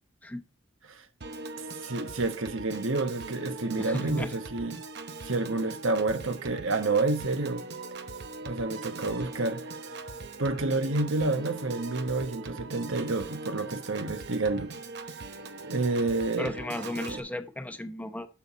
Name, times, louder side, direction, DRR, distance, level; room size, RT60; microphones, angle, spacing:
Piano / Organ, 1.2-17.2, right 3 dB, 55° right, 0.9 m, -41 dB
voice 1, 1.8-4.8 5.2-7.6 8.4-9.7 10.4-14.7 15.6-16.5 17.0-17.2, right 3 dB, 80° right, 1.2 m, -29 dB
voice 2, 3.8-4.3 16.4-18.3, left 1 dB, 10° left, 0.8 m, -35 dB
12.0 x 5.8 x 4.2 m
head